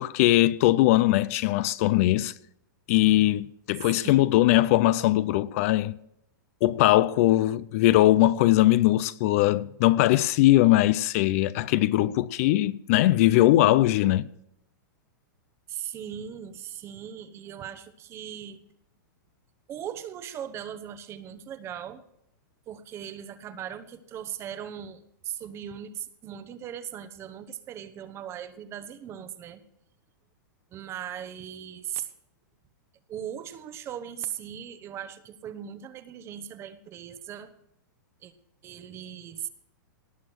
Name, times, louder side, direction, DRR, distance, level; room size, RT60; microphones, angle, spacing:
voice 1, 0.0-2.3 2.9-6.0 6.6-14.3, left 15 dB, 45° left, 0.4 m, -21 dB
voice 2, 3.9-4.3 15.7-18.6 19.7-22.0 22.7-29.6 30.7-32.1 33.1-37.5 38.2-38.3 38.6-39.5, right 9 dB, 25° right, 0.9 m, -39 dB
18.5 x 6.2 x 6.1 m
hypercardioid pair, 145°, 11 cm